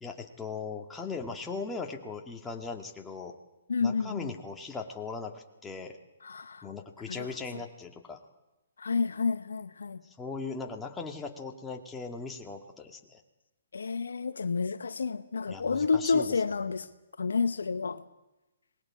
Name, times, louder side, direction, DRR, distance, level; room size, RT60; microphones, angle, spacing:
voice 1, 0.0-3.4 3.8-6.0 6.6-8.2 10.0-13.2 15.5-16.4, left 4 dB, 10° left, 2 dB, 2.0 m, -39 dB
voice 2, 3.7-4.3 6.2-6.6 7.2-7.3 8.8-10.0 13.7-16.9 17.2-18.0, left 5 dB, 75° left, 12 dB, 0.9 m, -29 dB
26.5 x 20.5 x 4.9 m, 1.0 s
figure-of-eight pair, 130°, 0 cm